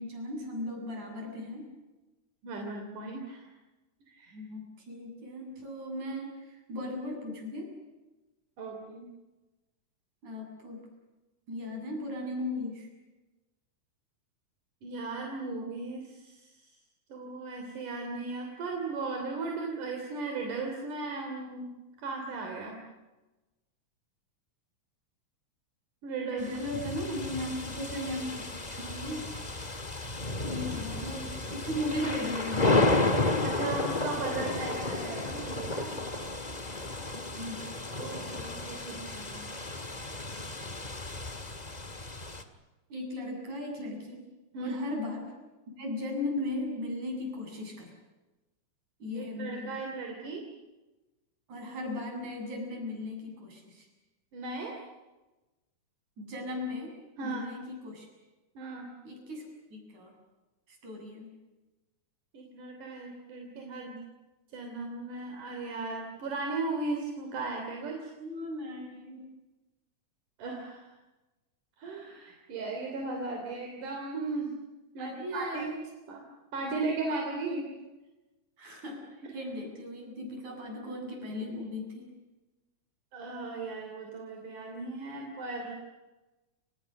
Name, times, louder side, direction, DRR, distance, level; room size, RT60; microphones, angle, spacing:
voice 1, 0.0-1.7 4.3-7.8 10.2-10.8 11.5-12.9 26.2-29.3 30.4-33.0 37.1-37.7 42.9-44.2 44.6-45.3 45.8-47.9 49.0-49.7 51.5-53.9 56.2-58.1 59.0-60.1 60.7-61.3 68.2-69.3 75.0-75.6 76.6-77.6 78.6-79.0 79.3-82.1, left 1 dB, 70° right, 2 dB, 9.2 m, -37 dB
voice 2, 2.4-3.5 4.1-4.3 8.6-9.1 14.8-16.6 17.1-22.8 26.0-26.4 33.4-36.0 38.0-39.5 44.5-44.8 49.1-50.5 54.3-54.8 57.2-57.5 58.6-58.9 62.3-64.0 64.5-68.1 70.4-70.9 71.8-74.6 74.9-75.8 76.1-76.2 76.5-77.6 79.2-79.3 83.1-85.7, right 3 dB, 85° right, 2 dB, 4.8 m, -37 dB
sound 1, 26.4-42.4, left 2 dB, 20° left, 1.2 m, -32 dB
30.0 x 28.0 x 6.6 m, 1.1 s
omnidirectional pair, 3.5 m